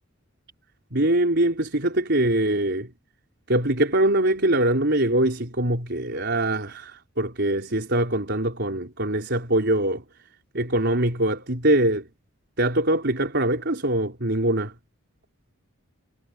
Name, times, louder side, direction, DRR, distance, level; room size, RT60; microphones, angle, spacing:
voice 1, 0.9-2.9 3.5-10.0 10.5-12.1 12.6-14.7, right 1 dB, 50° right, 4.8 m, -23 dB
head